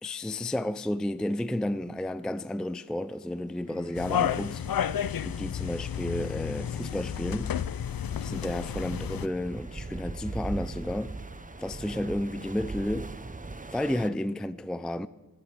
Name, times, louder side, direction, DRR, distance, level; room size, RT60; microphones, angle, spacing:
voice 1, 0.0-4.6 5.2-7.5 8.2-11.1 11.6-13.1 13.7-15.1, left 1 dB, ahead, 0.4 m, -32 dB
sound 1, 3.7-13.4, left 4 dB, 40° left, 1.2 m, -49 dB
sound 2, 3.9-9.3, left 9 dB, 60° left, 0.5 m, -31 dB
sound 3, 4.0-4.1 4.6-4.8 5.1-14.1, right 3 dB, 20° right, 0.7 m, -40 dB
12.5 x 9.7 x 8.1 m
wide cardioid pair, 95°, 39 cm